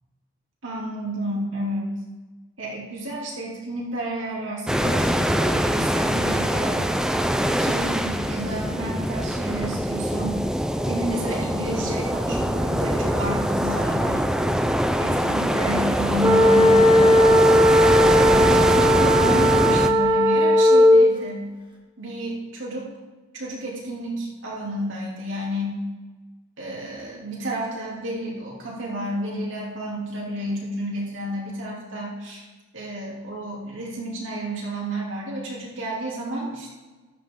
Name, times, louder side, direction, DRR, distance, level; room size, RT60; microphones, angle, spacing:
voice 1, 0.6-1.9 2.6-6.9 7.4-10.4 10.9-14.3 15.0-17.4 18.1-21.5 22.0-22.9 23.3-25.8 26.6-32.4 32.7-36.7, right 1 dB, 70° right, -4 dB, 3.1 m, -31 dB
sound 1, 4.7-19.9, equal, 5° right, 0.6 m, -23 dB
sound 2, 16.2-21.1, equal, 25° right, 1.9 m, -16 dB
14.0 x 11.0 x 3.9 m, 1.3 s
head